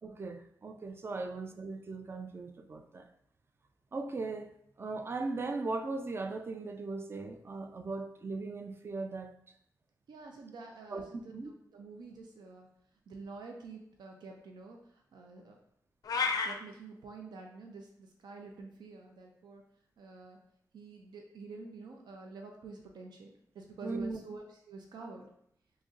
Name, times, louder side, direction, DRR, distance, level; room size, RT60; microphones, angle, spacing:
voice 1, 0.0-3.1 3.9-4.5 4.8-9.3 10.9-11.5 23.8-24.2, right 3 dB, 35° right, 6 dB, 0.3 m, -38 dB
voice 2, 10.1-12.7 13.1-15.6 16.4-19.6 20.0-20.4 20.7-25.3, right 3 dB, 90° right, 1 dB, 0.5 m, -48 dB
sound 1, 16.0-16.5, left 5 dB, 60° left, 0.4 m, -30 dB
3.0 x 2.6 x 3.6 m, 0.70 s
wide cardioid pair, 110°, 7 cm